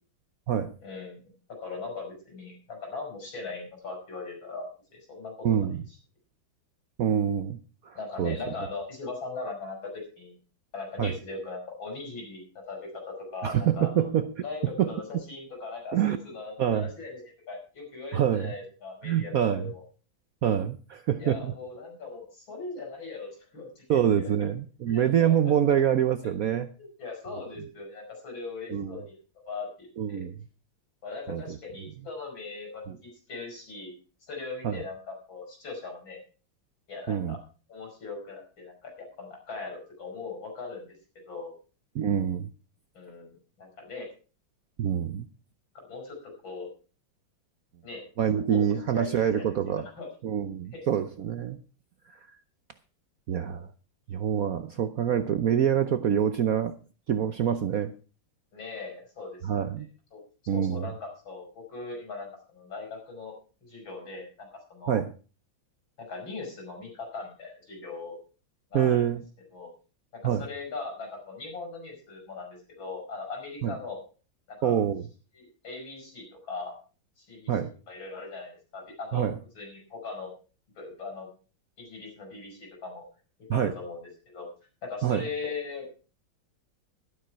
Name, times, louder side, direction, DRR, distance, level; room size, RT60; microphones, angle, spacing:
voice 1, 0.8-1.2 1.6-5.7 7.9-10.3 10.7-14.1 14.4-17.2 17.5-19.8 21.2-24.0 24.9-25.4 26.8-29.2 29.5-30.3 31.0-33.9 34.3-36.2 36.9-37.4 37.7-40.9 41.3-41.5 42.9-44.1 45.9-46.7 47.8-48.0 48.5-48.6 48.9-50.1 50.7-50.9 58.5-59.6 60.1-60.2 60.5-63.3 63.6-65.0 66.0-68.2 68.7-69.1 69.5-69.7 70.1-74.0 74.5-74.8 75.3-76.7 77.2-77.6 77.9-79.3 79.6-80.3 80.8-81.3 81.8-83.0 83.5-84.5 84.8-85.9, left 3 dB, 75° left, 2 dB, 6.0 m, -39 dB
voice 2, 5.4-5.8 7.0-7.6 7.8-8.4 11.0-11.1 13.4-14.3 14.8-15.2 15.9-16.2 16.6-16.9 18.1-18.5 19.0-19.7 20.4-21.5 23.9-26.7 28.7-29.0 30.0-30.3 31.3-31.6 34.6-34.8 37.1-37.4 41.9-42.5 44.8-45.3 48.2-49.8 50.2-51.6 52.3-52.4 53.3-53.7 54.1-56.7 57.1-57.9 59.4-59.9 60.5-60.9 64.9-65.1 68.7-69.2 70.2-70.4 73.6-73.7 74.6-75.0 77.5-77.7 79.1-79.4 83.5-83.7 85.0-85.3, right 9 dB, 65° right, 10 dB, 0.9 m, -26 dB
12.5 x 11.5 x 4.5 m, 0.36 s
omnidirectional pair, 2.2 m